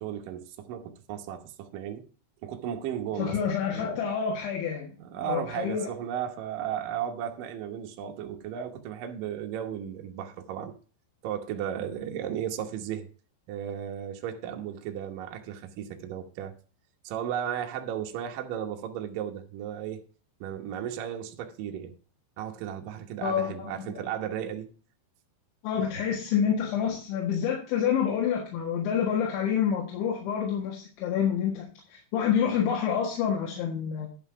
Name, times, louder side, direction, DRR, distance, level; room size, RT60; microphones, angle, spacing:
voice 1, 0.0-2.1 2.4-3.4 3.7-4.1 5.0-10.7 11.2-13.1 13.5-16.5 17.0-20.0 20.4-21.9 22.4-24.7, right 9 dB, 70° right, 2.1 m, -35 dB
voice 2, 3.2-4.9 5.2-5.9 23.2-24.1 25.6-34.1, left 8 dB, 80° left, 4.0 m, -28 dB
11.0 x 5.7 x 5.6 m
omnidirectional pair, 5.4 m